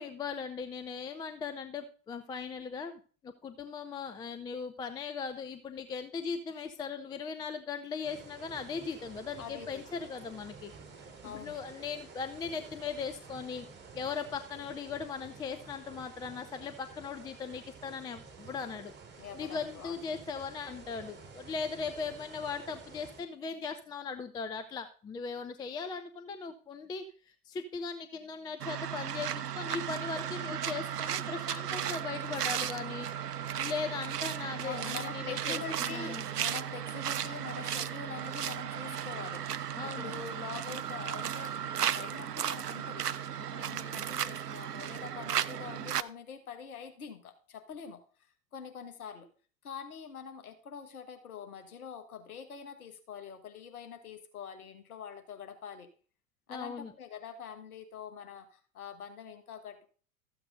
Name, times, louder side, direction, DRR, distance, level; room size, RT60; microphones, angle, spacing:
voice 1, 0.0-10.7 11.2-13.7 13.9-18.9 19.3-33.1 33.5-36.2 39.7-40.1 56.5-56.9, left 5 dB, 10° left, 8 dB, 0.4 m, -39 dB
sound 1, 8.0-23.2, right 4 dB, 20° right, 3.8 m, -51 dB
voice 2, 9.4-10.1 11.2-11.6 19.2-20.0 34.6-43.1 43.4-48.0 48.5-49.3 49.6-55.9 56.5-59.9, left 7 dB, 70° left, 7 dB, 1.8 m, -45 dB
sound 2, 28.6-46.0, right 9 dB, 80° right, 0.6 m, -35 dB
13.5 x 7.8 x 3.7 m, 0.40 s
figure-of-eight pair, 90°, 46 cm